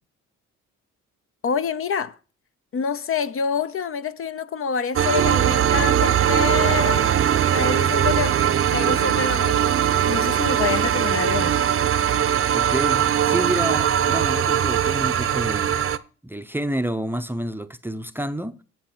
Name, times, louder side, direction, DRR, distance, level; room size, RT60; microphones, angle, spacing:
voice 1, 1.4-2.2 2.7-7.1 7.5-8.4 8.7-9.7 10.0-11.6, left 6 dB, 45° left, 0.7 m, -27 dB
sound 1, 4.9-16.0, right 9 dB, 45° right, 0.7 m, -21 dB
sound 2, 5.2-14.5, right 13 dB, 75° right, 0.8 m, -29 dB
voice 2, 12.5-15.9 16.2-18.6, right 1 dB, 5° right, 0.6 m, -29 dB
10.0 x 7.9 x 4.4 m
cardioid pair, 90°, 30 cm